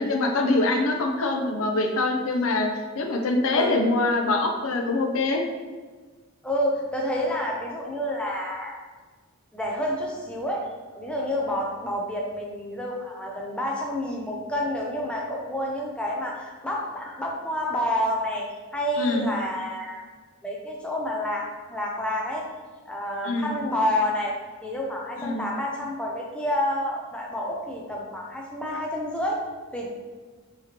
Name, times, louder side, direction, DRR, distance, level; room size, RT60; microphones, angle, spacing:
voice 1, 0.0-2.7 2.9-5.4 19.0-19.3 23.2-23.6 25.2-25.5, left 2 dB, 65° left, 3 dB, 0.5 m, -24 dB
voice 2, 6.4-8.8 9.5-10.7 10.9-18.5 18.7-20.0 20.4-22.5 22.9-24.3 24.6-29.4 29.7-29.9, left 1 dB, 5° left, -2 dB, 0.4 m, -29 dB
4.9 x 3.0 x 2.9 m, 1.4 s
head